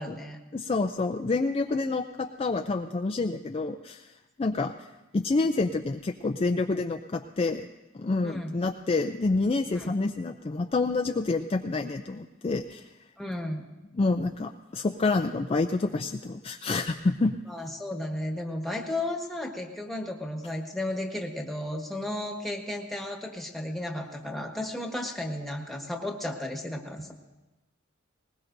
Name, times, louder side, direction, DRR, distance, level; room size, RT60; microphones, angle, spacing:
voice 1, 0.0-0.4 8.2-8.5 9.7-9.9 13.2-13.6 17.5-27.1, left 1 dB, ahead, 2 dB, 1.4 m, -34 dB
voice 2, 0.5-4.1 4.4-4.9 5.1-7.7 7.9-12.8 13.9-17.3, left 3 dB, 30° left, 5 dB, 0.4 m, -28 dB
20.5 x 20.0 x 2.6 m, 1.1 s
head